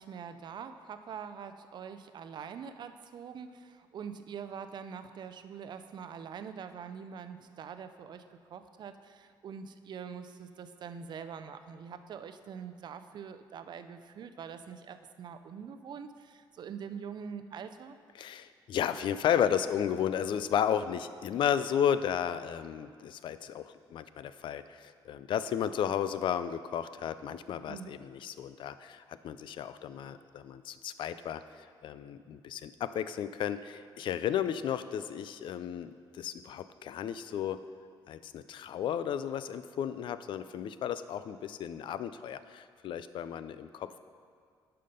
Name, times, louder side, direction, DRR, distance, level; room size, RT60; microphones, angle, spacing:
voice 1, 0.0-18.0 27.7-28.0, right 7 dB, 55° right, 9 dB, 0.5 m, -44 dB
voice 2, 18.1-37.6 38.1-44.0, left 9 dB, 65° left, 13 dB, 0.4 m, -33 dB
10.5 x 5.7 x 5.3 m, 2.1 s
cardioid pair, 100°, 9 cm